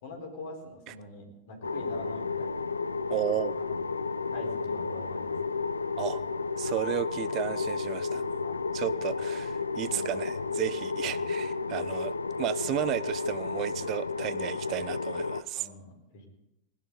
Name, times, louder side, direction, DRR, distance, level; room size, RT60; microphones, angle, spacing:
voice 1, 0.0-2.6 3.2-3.8 4.3-5.6 8.4-8.6 9.9-10.4 11.0-11.2 15.5-16.3, left 2 dB, 50° left, 1 dB, 4.2 m, -45 dB
sound 1, 1.6-15.4, left 4 dB, 80° left, 0.4 m, -32 dB
voice 2, 3.1-3.6 6.0-6.2 6.6-8.2 8.7-15.7, right 14 dB, 35° right, 17 dB, 0.4 m, -33 dB
20.0 x 11.0 x 4.0 m, 0.87 s
figure-of-eight pair, 90°, 0 cm